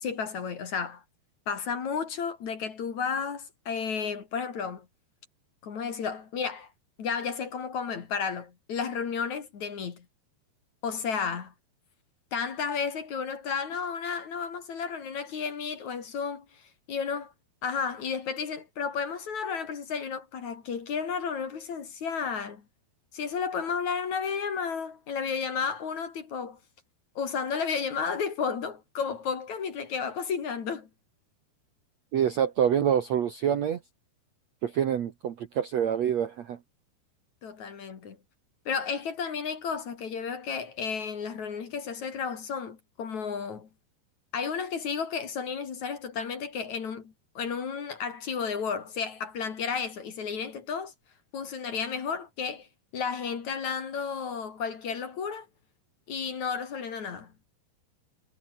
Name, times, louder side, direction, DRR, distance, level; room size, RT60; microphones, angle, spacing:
voice 1, 0.0-1.0 1.5-4.9 5.6-6.7 7.0-10.1 10.8-11.5 12.3-16.6 16.9-17.3 17.6-22.6 23.1-26.6 27.2-30.9 37.4-38.2 38.7-43.7 44.3-50.9 51.3-52.7 52.9-55.5 56.1-57.3, left 6 dB, 50° left, 3.5 m, -32 dB
voice 2, 32.1-33.8 34.6-36.6, right 9 dB, 60° right, 1.9 m, -26 dB
omnidirectional pair, 4.9 m